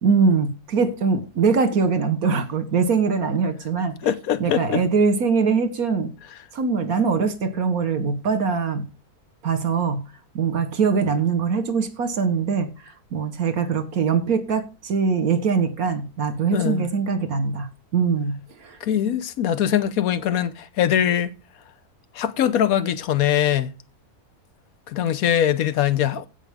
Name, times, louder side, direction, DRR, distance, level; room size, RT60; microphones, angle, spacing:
voice 1, 0.0-3.9 4.4-6.1 6.5-8.8 9.4-10.0 10.4-18.8, right 5 dB, 70° right, 1.8 m, -22 dB
voice 2, 4.0-4.8 16.5-16.9 18.8-21.3 22.1-23.7 24.9-26.3, left 10 dB, 70° left, 1.2 m, -22 dB
16.0 x 5.4 x 3.6 m
omnidirectional pair, 1.6 m